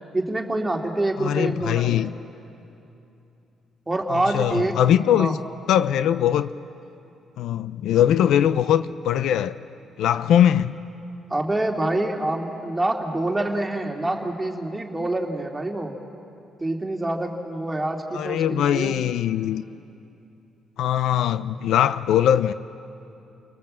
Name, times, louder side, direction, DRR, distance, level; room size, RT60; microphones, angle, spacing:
voice 1, 0.1-2.1 3.9-4.8 5.1-5.4 11.3-16.0 16.6-19.0, right 1 dB, 15° right, 2.8 m, -26 dB
voice 2, 1.2-2.1 4.3-5.4 5.7-6.5 7.4-9.6 10.0-10.7 18.1-19.6 20.8-22.5, left 10 dB, 80° left, 0.6 m, -21 dB
29.5 x 19.5 x 7.6 m
cardioid pair, 90°, 0 cm